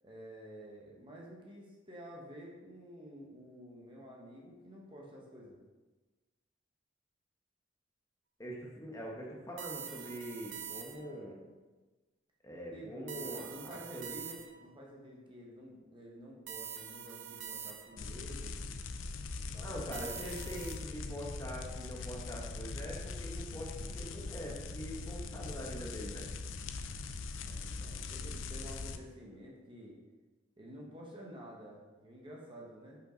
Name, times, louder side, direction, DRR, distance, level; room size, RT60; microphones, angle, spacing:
voice 1, 0.0-5.6 12.7-18.6 19.5-19.8 27.4-29.9 30.6-33.0, equal, 25° right, -2 dB, 1.1 m, -50 dB
voice 2, 8.4-11.4 12.4-14.2 19.6-26.2, equal, 15° left, -3 dB, 1.1 m, -43 dB
sound 1, 9.6-11.2 13.1-14.7 16.5-18.1 19.9-20.8, right 9 dB, 75° right, 0.6 m, -45 dB
sound 2, 18.0-29.0, left 3 dB, 85° left, 0.5 m, -41 dB
5.5 x 5.2 x 5.1 m, 1.3 s
head